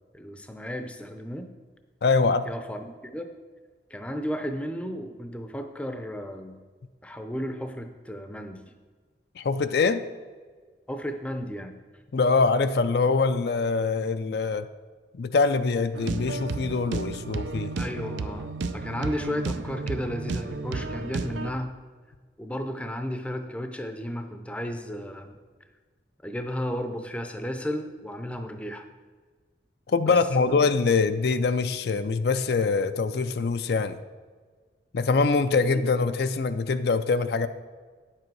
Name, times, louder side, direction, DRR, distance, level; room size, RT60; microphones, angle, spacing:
voice 1, 0.1-1.5 2.4-3.3 3.9-6.6 7.0-8.6 10.9-11.8 17.8-21.8 22.4-25.3 26.2-28.9 30.0-30.2 30.5-30.7 35.7-35.8, equal, 5° left, 7 dB, 0.6 m, -34 dB
voice 2, 2.0-2.4 9.4-10.0 12.1-14.7 15.1-17.7 29.9-34.0 34.9-37.5, left 4 dB, 60° left, 10 dB, 0.4 m, -24 dB
sound 1, 15.9-21.5, right 3 dB, 85° right, 0.5 m, -32 dB
9.8 x 7.5 x 4.7 m, 1.5 s
head